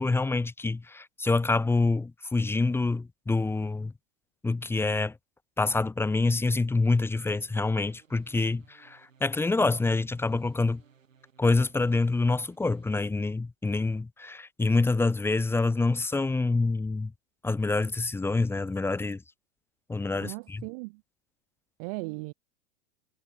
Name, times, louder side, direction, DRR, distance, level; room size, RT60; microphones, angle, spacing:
voice 1, 0.0-3.9 4.4-5.2 5.6-10.8 11.4-17.1 17.4-19.2 19.9-20.6, left 3 dB, 5° left, 0.8 m, -26 dB
sound 1, 7.1-12.9, right 7 dB, 90° right, 6.3 m, -62 dB
voice 2, 20.1-21.0 21.8-22.3, right 30 dB, 30° right, 0.4 m, -37 dB
hypercardioid pair, 110°, 38 cm